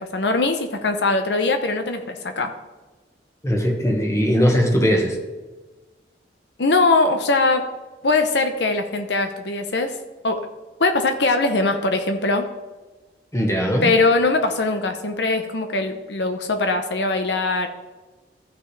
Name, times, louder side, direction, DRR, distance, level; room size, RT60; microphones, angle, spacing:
voice 1, 0.0-2.5 6.6-7.6 8.0-9.9 10.2-10.4 10.8-12.5 13.8-17.7, left 3 dB, 70° left, 6 dB, 0.8 m, -21 dB
voice 2, 3.4-5.2 13.3-13.9, equal, 15° left, 2 dB, 1.4 m, -19 dB
15.0 x 5.9 x 3.3 m, 1.2 s
head